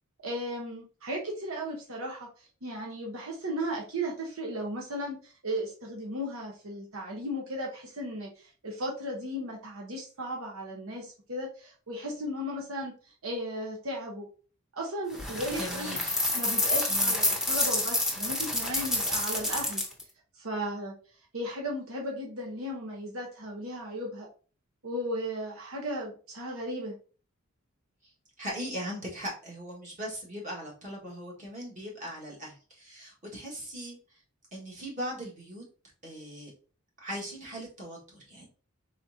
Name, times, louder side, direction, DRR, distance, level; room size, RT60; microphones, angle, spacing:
voice 1, 0.2-2.3 2.6-12.9 13.2-14.3 14.7-16.0 16.3-19.8 20.3-20.9 21.3-24.3 24.8-26.9, equal, 75° right, -1 dB, 1.0 m, -35 dB
sound 1, 15.1-20.0, left 1 dB, ahead, 0.7 m, -28 dB
voice 2, 15.5-16.2 16.9-17.2 28.4-34.0 34.5-35.6 36.0-36.5 37.0-38.5, equal, 35° right, -2 dB, 1.6 m, -39 dB
4.2 x 3.7 x 2.7 m, 0.38 s
head